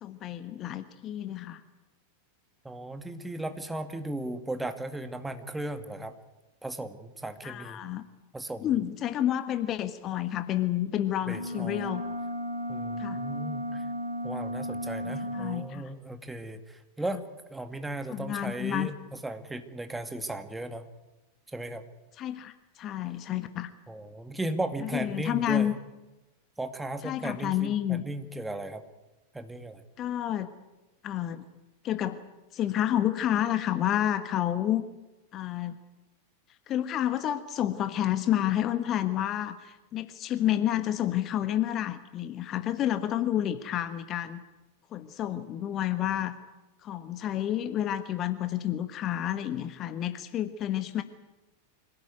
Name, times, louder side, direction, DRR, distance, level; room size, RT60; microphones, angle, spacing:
voice 1, 0.0-1.6 7.4-8.1 8.6-12.0 13.0-13.2 15.0-15.9 17.1-17.2 18.1-18.9 22.2-23.7 24.9-25.7 27.0-28.0 30.0-30.5 31.0-31.4 31.8-32.2 32.5-34.8 35.3-35.7 36.7-44.4 44.9-46.3 46.8-51.0, left 11 dB, 30° left, 11 dB, 1.3 m, -29 dB
voice 2, 2.6-6.1 6.6-7.8 8.3-8.7 11.3-11.9 12.7-13.8 14.2-17.2 17.5-20.8 21.5-21.8 23.9-25.7 26.6-28.8 29.3-29.8, right 1 dB, 5° right, 8 dB, 2.0 m, -36 dB
sound 1, 11.3-15.7, equal, 85° right, 2.9 m, -34 dB
25.0 x 17.5 x 9.5 m, 1.1 s
figure-of-eight pair, 90°, 0 cm